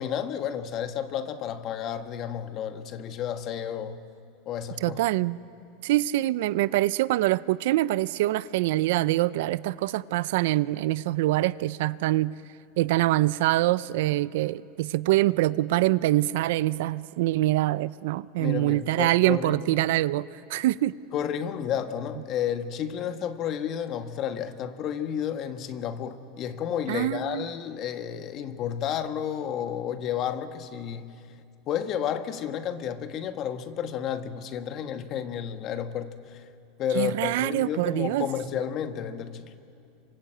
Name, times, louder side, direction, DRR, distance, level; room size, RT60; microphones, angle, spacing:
voice 1, 0.0-4.0 4.4-5.0 18.4-19.7 21.1-31.2 31.7-36.4 36.8-39.5, left 9 dB, 40° left, 9 dB, 1.4 m, -31 dB
voice 2, 4.8-5.4 5.8-12.3 12.8-20.9 26.9-27.5 36.9-38.3, right 16 dB, 70° right, 18 dB, 0.5 m, -24 dB
27.0 x 25.5 x 7.9 m, 2.5 s
supercardioid pair, 140°, 0 cm